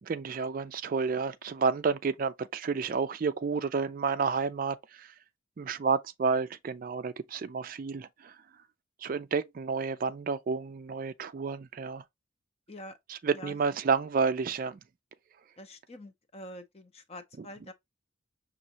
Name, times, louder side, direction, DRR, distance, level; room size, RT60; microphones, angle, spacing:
voice 1, 0.0-5.1 5.6-8.3 9.0-12.0 13.1-14.8, right 5 dB, 40° right, 0.3 m, -30 dB
voice 2, 15.6-17.7, left 1 dB, 30° left, 0.6 m, -46 dB
6.4 x 2.5 x 2.8 m
head